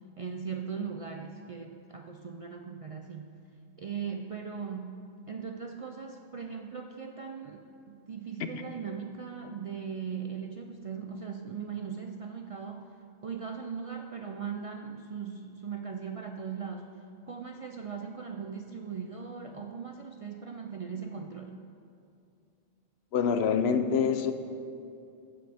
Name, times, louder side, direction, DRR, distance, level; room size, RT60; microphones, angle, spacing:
voice 1, 0.2-3.3 3.8-12.9 13.2-21.6, right 6 dB, 55° right, 4 dB, 0.4 m, -39 dB
voice 2, 23.1-24.3, left 6 dB, 75° left, 9 dB, 0.9 m, -26 dB
15.0 x 7.8 x 3.4 m, 2.5 s
omnidirectional pair, 1.1 m